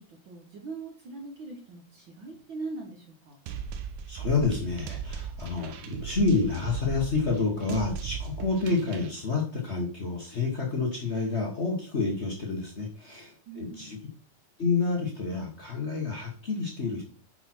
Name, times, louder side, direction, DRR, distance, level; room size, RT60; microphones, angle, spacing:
voice 1, 0.0-3.4 13.5-13.9, right 3 dB, 60° right, 2 dB, 1.3 m, -41 dB
sound 1, 3.5-9.1, right 7 dB, 90° right, 2.4 m, -37 dB
voice 2, 4.1-14.0 14.6-17.0, left 4 dB, 55° left, -1 dB, 0.7 m, -29 dB
6.7 x 5.9 x 4.4 m, 0.41 s
omnidirectional pair, 3.4 m